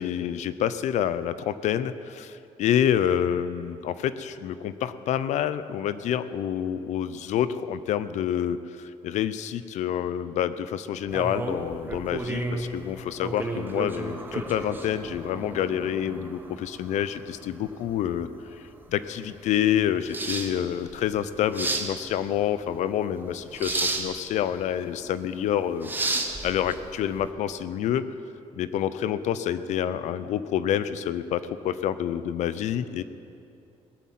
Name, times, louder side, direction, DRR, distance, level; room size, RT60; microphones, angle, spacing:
voice 1, 0.0-25.9 26.4-28.0 28.6-33.0, left 10 dB, 85° left, 14 dB, 0.6 m, -28 dB
sound 1, 11.1-27.3, right 2 dB, 15° right, 1.3 m, -33 dB
19.0 x 8.3 x 7.6 m, 2.6 s
cardioid pair, 140°, 12 cm